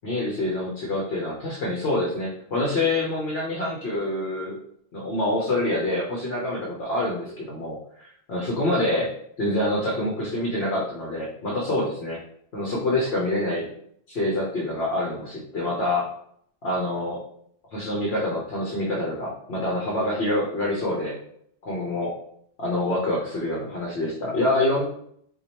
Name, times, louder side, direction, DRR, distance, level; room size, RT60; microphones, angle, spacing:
voice 1, 0.0-4.6 4.9-9.1 9.4-12.2 12.5-13.7 14.1-16.1 16.6-17.2 17.7-21.2 21.6-22.1 22.6-24.8, left 1 dB, 65° left, -4 dB, 1.1 m, -26 dB
4.7 x 2.4 x 2.9 m, 0.67 s
omnidirectional pair, 1.2 m